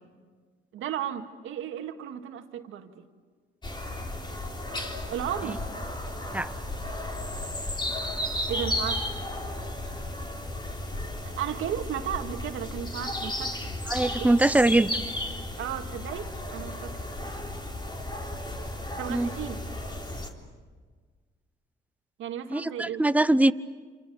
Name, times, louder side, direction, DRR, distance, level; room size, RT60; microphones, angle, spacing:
voice 1, 0.7-2.9 5.1-5.7 8.5-9.1 11.2-13.6 14.2-14.3 15.6-17.0 19.0-19.6 22.2-23.0, right 10 dB, 85° right, 5 dB, 2.0 m, -34 dB
sound 1, 3.6-20.3, left 1 dB, 25° left, 3.8 m, -34 dB
voice 2, 13.9-14.9 19.1-19.3 22.5-23.5, right 2 dB, 5° right, 13 dB, 0.8 m, -22 dB
28.5 x 28.0 x 7.0 m, 1.5 s
cardioid pair, 90°, 20 cm